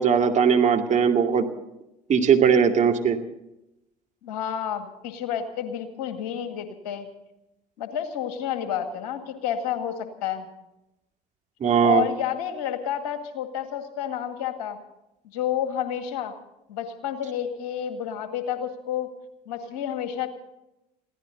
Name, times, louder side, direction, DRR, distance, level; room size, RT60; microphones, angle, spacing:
voice 1, 0.0-1.4 2.1-3.2 11.6-12.1, right 7 dB, 35° right, 3 dB, 2.4 m, -19 dB
voice 2, 4.2-7.1 7.8-10.5 11.8-14.8 15.3-16.3 16.7-19.1 19.5-20.3, left 9 dB, 65° left, 8 dB, 2.1 m, -30 dB
22.5 x 16.0 x 4.0 m, 0.89 s
figure-of-eight pair, 60°, 20 cm